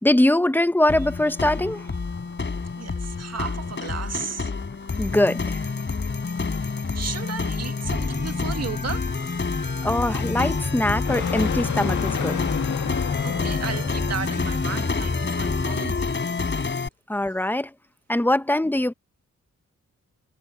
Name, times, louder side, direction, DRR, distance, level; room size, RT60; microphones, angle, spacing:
voice 1, 0.0-1.8 5.0-5.6 9.8-12.4 17.1-17.7 18.1-18.9, left 1 dB, 5° left, 0.9 m, -22 dB
sound 1, 0.9-16.9, left 4 dB, 40° left, 4.8 m, -28 dB
sound 2, 1.1-14.6, left 8 dB, 80° left, 2.2 m, -35 dB
voice 2, 2.8-4.5 6.7-9.6 13.2-16.2, right 6 dB, 55° right, 1.9 m, -34 dB
sound 3, 7.8-15.8, left 2 dB, 25° left, 4.0 m, -32 dB
wide cardioid pair, 100°, 29 cm